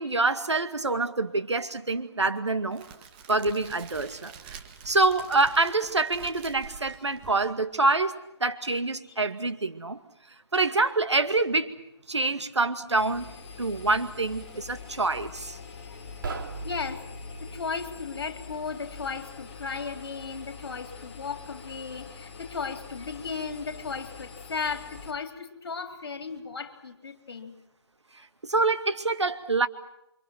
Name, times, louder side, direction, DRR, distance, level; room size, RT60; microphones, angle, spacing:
voice 1, 0.0-2.9 3.3-4.6 4.8-10.0 10.5-11.7 12.1-15.6 28.4-29.7, right 3 dB, 80° right, 9 dB, 2.2 m, -26 dB
Crackle, 2.7-7.8, right 7 dB, 20° right, 1.8 m, -47 dB
Engine, 13.0-25.1, left 5 dB, 25° left, 3.1 m, -44 dB
sound 1, 16.2-17.7, right 4 dB, 50° right, 3.3 m, -38 dB
voice 2, 16.6-17.1 17.4-27.5, left 5 dB, 60° left, 6 dB, 3.8 m, -35 dB
29.0 x 25.5 x 6.1 m, 0.82 s
figure-of-eight pair, 150°, 14 cm